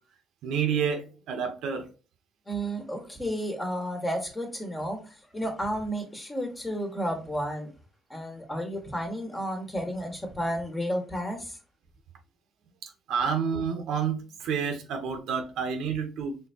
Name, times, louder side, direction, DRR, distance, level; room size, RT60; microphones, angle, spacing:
voice 1, 0.4-1.9 12.8-16.4, right 6 dB, 85° right, 0.8 m, -29 dB
voice 2, 2.5-7.7 8.1-11.6, equal, 20° left, 1.4 m, -32 dB
4.4 x 3.4 x 2.8 m
cardioid pair, 90°, 0 cm